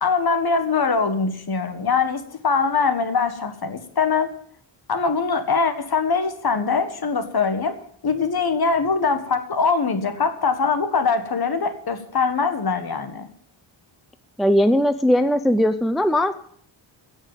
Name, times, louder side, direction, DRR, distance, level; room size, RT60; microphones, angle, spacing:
voice 1, 0.0-4.3 4.9-7.8 8.0-13.3, left 5 dB, 50° left, 8 dB, 1.7 m, -22 dB
voice 2, 14.4-16.3, equal, ahead, 11 dB, 0.5 m, -19 dB
16.0 x 6.4 x 9.0 m, 0.64 s
wide cardioid pair, 160°, 47 cm